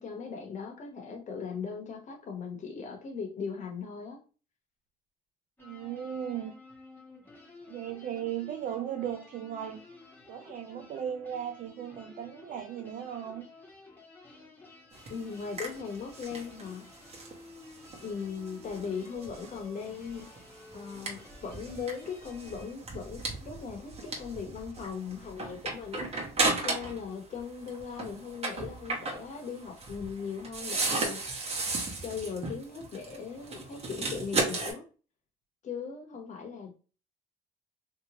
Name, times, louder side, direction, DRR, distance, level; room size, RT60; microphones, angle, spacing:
voice 1, 0.0-4.2 15.1-16.9 18.0-20.3 20.7-26.1 26.6-31.2 32.0-34.8 35.6-36.7, left 6 dB, 45° left, 1.1 m, -39 dB
sound 1, 5.6-22.7, left 2 dB, 10° left, 1.2 m, -53 dB
voice 2, 5.6-6.6 7.7-9.8 10.3-13.5, right 9 dB, 55° right, 0.5 m, -37 dB
sound 2, 14.9-27.1 27.3-34.7, right 3 dB, 35° right, 1.2 m, -35 dB
3.2 x 3.0 x 2.9 m
cardioid pair, 110°, 17 cm